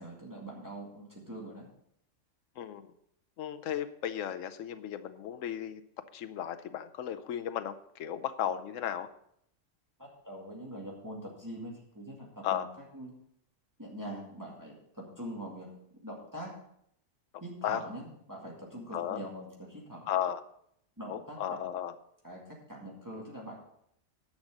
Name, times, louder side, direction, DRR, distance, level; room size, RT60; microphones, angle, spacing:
voice 1, 0.0-1.7 10.0-12.6 12.9-13.1 13.8-15.8 16.0-16.5 17.4-20.1 21.0-21.6 22.2-23.6, right 1 dB, 15° right, -3 dB, 2.1 m, -43 dB
voice 2, 3.4-5.8 6.1-9.1 12.4-12.7 17.6-17.8 18.9-19.2 20.1-20.4 21.1-21.9 23.1-23.2, left 10 dB, 80° left, 9 dB, 1.1 m, -35 dB
10.5 x 6.5 x 6.4 m, 0.70 s
omnidirectional pair, 1.3 m